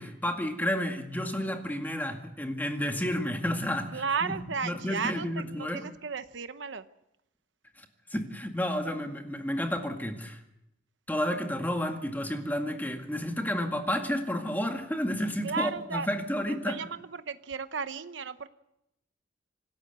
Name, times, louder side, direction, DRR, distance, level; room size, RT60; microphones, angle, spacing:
voice 1, 0.0-4.3 4.6-5.8 7.8-10.4 11.1-16.8, equal, 10° left, 4 dB, 2.0 m, -31 dB
voice 2, 3.9-6.8 15.4-16.1 16.5-18.5, right 5 dB, 80° right, 11 dB, 0.8 m, -34 dB
26.5 x 13.0 x 8.0 m, 0.84 s
head